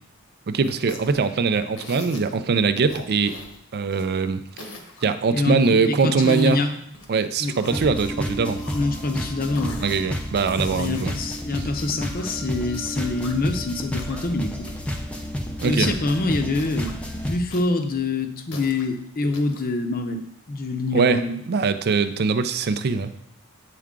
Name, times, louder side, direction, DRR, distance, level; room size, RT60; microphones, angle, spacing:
voice 1, 0.5-3.4 3.7-4.7 5.0-6.6 7.1-8.6 9.8-11.1 11.5-11.6 15.6-15.9 20.9-23.1, right 4 dB, 50° right, 11 dB, 0.4 m, -22 dB
sound 1, 0.6-1.2 1.8-2.4 2.9-4.1 4.5-5.1 5.6-7.1 7.5-8.3 8.5-9.2 9.6-10.0 10.4-12.3 13.0-13.5 13.9-14.4 14.7-14.8 15.1-15.2 15.6-16.1 16.5-16.9 17.5-18.9 19.3-19.6, left 2 dB, 65° left, 1.0 m, -41 dB
voice 2, 5.8-6.7 7.4-7.5 8.7-9.8 10.8-14.7 15.6-16.9 17.2-21.4, left 2 dB, 40° left, 6 dB, 0.7 m, -25 dB
sound 2, 7.7-17.4, equal, 5° left, 0.6 m, -31 dB
8.4 x 4.5 x 3.7 m, 0.74 s
head